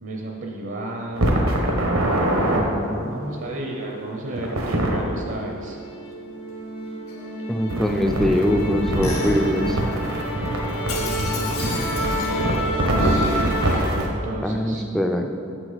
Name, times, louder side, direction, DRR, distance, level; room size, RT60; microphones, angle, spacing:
voice 1, 0.0-1.5 3.1-5.8 10.9-12.6 14.0-14.8, right 1 dB, 60° right, 0 dB, 0.7 m, -33 dB
sound 1, 1.1-2.6 4.4-5.0 7.7-14.1, right 1 dB, 80° right, 1.1 m, -24 dB
voice 2, 2.5-3.3 7.5-9.8 14.4-15.3, left 1 dB, ahead, 3 dB, 0.4 m, -23 dB
Musical instrument, 2.6-13.8, equal, 75° left, 1.3 m, -29 dB
7.5 x 5.9 x 4.1 m, 2.7 s
head